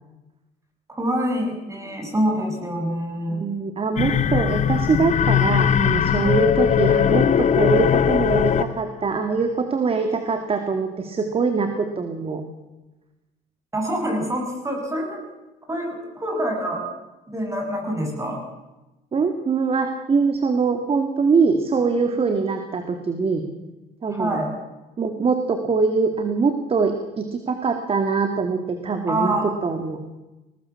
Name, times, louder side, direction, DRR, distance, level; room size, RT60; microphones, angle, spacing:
voice 1, 0.9-3.4 13.7-15.2 15.7-16.9 17.3-18.4 24.1-24.5 29.1-29.5, right 1 dB, 15° right, 2 dB, 8.0 m, -26 dB
voice 2, 3.3-12.4 19.1-23.4 24.0-24.4 25.0-30.0, right 4 dB, 35° right, 7 dB, 2.4 m, -23 dB
sound 1, 4.0-8.9, left 8 dB, 45° left, 1.1 m, -19 dB
21.5 x 18.0 x 7.3 m, 1.0 s
cardioid pair, 110°, 17 cm